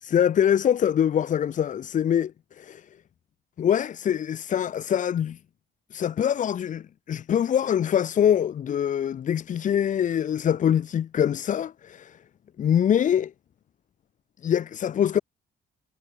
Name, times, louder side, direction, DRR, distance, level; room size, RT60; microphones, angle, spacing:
voice 1, 0.0-2.9 3.6-5.4 5.9-12.2 12.6-13.3 14.4-15.2, left 9 dB, 40° left, 0.4 m, -24 dB
cardioid pair, 90°, 20 cm